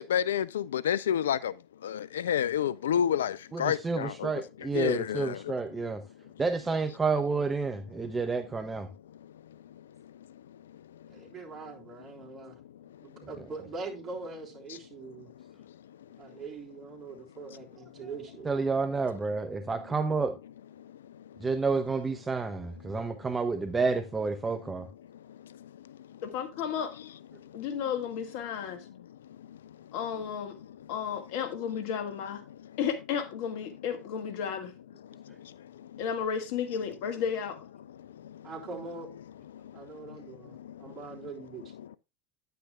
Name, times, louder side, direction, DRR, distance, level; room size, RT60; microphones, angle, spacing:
voice 1, 0.0-1.5 1.8-4.3 4.7-5.4, left 9 dB, 80° left, 0.4 m, -28 dB
voice 2, 3.5-6.0 6.4-8.9 18.4-20.3 21.4-24.9, right 4 dB, 20° right, 0.9 m, -30 dB
voice 3, 11.1-12.6 13.0-15.3 16.2-18.5 38.4-39.1 39.7-41.7, right 4 dB, 35° right, 3.5 m, -42 dB
voice 4, 26.2-26.9 27.5-28.8 29.9-30.5 30.9-32.4 32.8-34.7 36.0-37.6, left 7 dB, 65° left, 1.7 m, -33 dB
9.9 x 9.2 x 2.3 m
hypercardioid pair, 80°, 0 cm